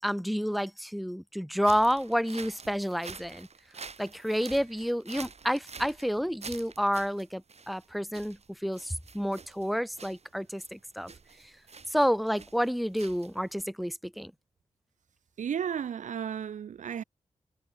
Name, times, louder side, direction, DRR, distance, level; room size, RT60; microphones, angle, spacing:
voice 1, 0.0-3.5 4.0-11.1 11.9-14.3, equal, ahead, 5.3 m, -29 dB
sound 1, 1.6-13.6, right 4 dB, 60° right, 5.3 m, -48 dB
voice 2, 15.4-17.0, right 8 dB, 85° right, 1.0 m, -33 dB
cardioid pair, 50°, 12 cm